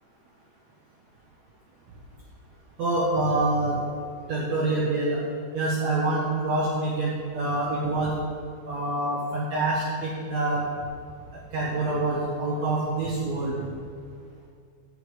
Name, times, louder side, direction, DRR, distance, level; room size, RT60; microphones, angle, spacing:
voice 1, 2.8-3.8 4.3-5.2 5.5-8.1 8.6-10.7 11.3-13.6, right 2 dB, 90° right, -5 dB, 1.5 m, -26 dB
12.0 x 5.1 x 8.3 m, 2.3 s
omnidirectional pair, 5.1 m